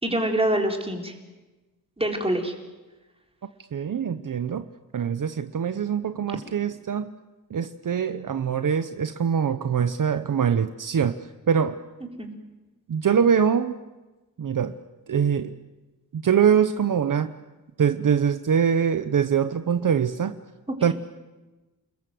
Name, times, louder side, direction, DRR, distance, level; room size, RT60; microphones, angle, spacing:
voice 1, 0.0-1.1 2.0-2.5 12.2-12.3 20.7-20.9, right 1 dB, 15° right, 2 dB, 4.0 m, -25 dB
voice 2, 3.7-4.7 4.9-7.1 7.5-11.8 12.9-13.8 14.4-14.8 15.1-15.6 16.1-17.3 17.8-20.3 20.8-20.9, right 7 dB, 60° right, 10 dB, 0.9 m, -23 dB
29.0 x 21.5 x 7.8 m, 1.2 s
wide cardioid pair, 120°, 36 cm